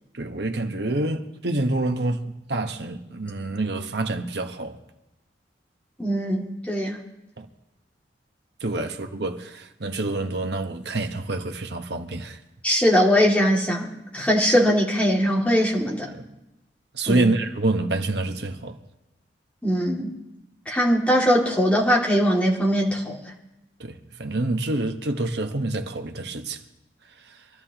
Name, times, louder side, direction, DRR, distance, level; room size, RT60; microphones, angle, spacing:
voice 1, 0.1-4.8 7.4-7.5 8.6-12.4 16.1-16.2 16.9-18.8 23.8-26.6, right 2 dB, 65° right, 1.1 m, -27 dB
voice 2, 6.0-7.0 12.6-16.1 17.1-17.3 19.6-20.1 20.7-23.2, equal, 5° left, 2.3 m, -21 dB
25.5 x 13.0 x 3.0 m
head